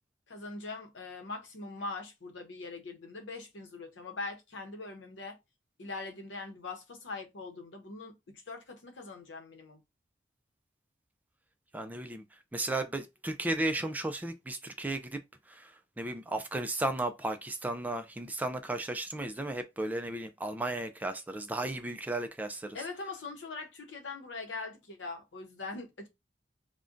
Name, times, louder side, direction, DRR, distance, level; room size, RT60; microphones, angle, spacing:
voice 1, 0.3-5.4 5.8-9.8 22.7-26.1, left 3 dB, 75° left, 0.8 m, -42 dB
voice 2, 11.7-12.2 12.5-15.2 15.5-22.8, right 2 dB, 10° right, 0.3 m, -34 dB
2.5 x 2.1 x 3.6 m
head